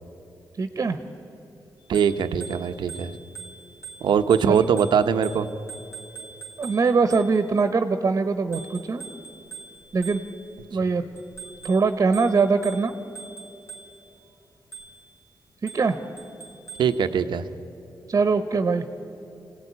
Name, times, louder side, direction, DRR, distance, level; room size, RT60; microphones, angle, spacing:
voice 1, 0.6-1.0 4.5-4.7 6.6-9.0 9.9-10.2 10.7-11.0 11.5-12.9 15.6-16.0 18.1-19.0, right 4 dB, 45° right, 9 dB, 1.2 m, -22 dB
Bicycle bell, 1.8-7.6 8.5-10.6 11.2-14.1 14.7-15.1 15.7-17.0, right 5 dB, 35° left, 3.5 m, -43 dB
voice 2, 1.9-3.1 4.0-5.5 16.8-17.5, right 7 dB, 85° right, 8 dB, 1.0 m, -22 dB
25.5 x 17.5 x 9.8 m, 3.0 s
wide cardioid pair, 115°, 8 cm